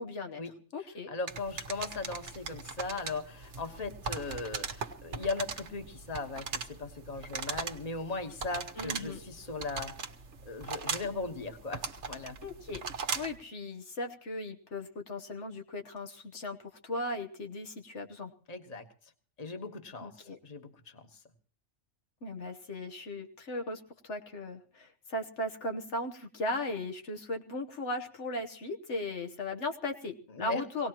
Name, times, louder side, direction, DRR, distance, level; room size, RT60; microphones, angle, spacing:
voice 1, 0.0-0.4 0.7-1.1 8.7-9.2 12.4-12.8 13.1-16.6 16.8-18.3 20.0-20.4 22.2-30.9, left 2 dB, 75° left, 4 dB, 1.5 m, -37 dB
voice 2, 1.1-10.0 10.4-12.4 18.5-18.9 19.4-21.2 30.3-30.7, left 3 dB, 35° left, 6 dB, 1.4 m, -38 dB
sound 1, 1.3-13.4, right 5 dB, 70° right, 1.3 m, -40 dB
24.0 x 18.0 x 3.0 m, 0.41 s
omnidirectional pair, 1.2 m